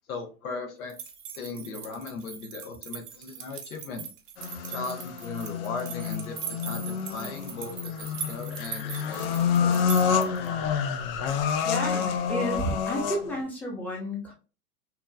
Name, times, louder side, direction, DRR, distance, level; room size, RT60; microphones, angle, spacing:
voice 1, 0.1-0.9 1.4-4.1 4.7-10.7, left 4 dB, 70° left, 3 dB, 1.0 m, -38 dB
sound 1, 0.9-10.5, right 7 dB, 60° right, 0.8 m, -40 dB
sound 2, 4.4-13.4, left 6 dB, 45° left, 0.5 m, -28 dB
voice 2, 11.6-14.3, equal, 5° left, -2 dB, 0.7 m, -31 dB
3.0 x 2.3 x 2.2 m, 0.33 s
hypercardioid pair, 105°, 44 cm